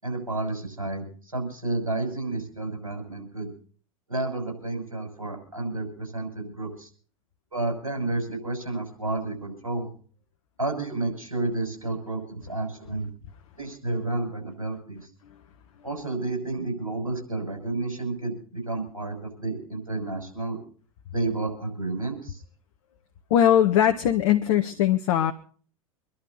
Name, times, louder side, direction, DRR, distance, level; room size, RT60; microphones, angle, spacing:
voice 1, 0.0-3.5 4.1-6.9 7.5-9.9 10.6-13.1 13.6-15.0 15.8-20.6 21.1-22.4, right 2 dB, 90° right, 3 dB, 6.3 m, -31 dB
voice 2, 23.3-25.3, left 10 dB, 60° left, 6 dB, 1.3 m, -20 dB
25.5 x 11.5 x 4.1 m, 0.43 s
figure-of-eight pair, 85°, 18 cm